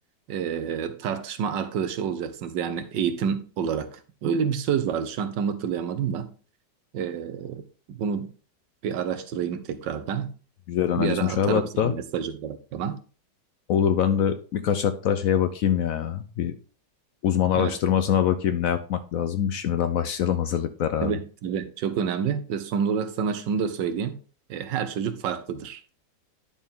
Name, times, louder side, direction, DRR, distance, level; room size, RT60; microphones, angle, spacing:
voice 1, 0.3-6.3 6.9-8.3 8.8-10.3 11.0-13.0 17.5-17.8 21.0-24.2 24.5-25.8, right 7 dB, 85° right, 1.5 m, -28 dB
voice 2, 10.7-11.9 13.7-16.5 17.2-21.1, left 9 dB, 65° left, 0.8 m, -24 dB
10.5 x 4.4 x 3.6 m
omnidirectional pair, 1.9 m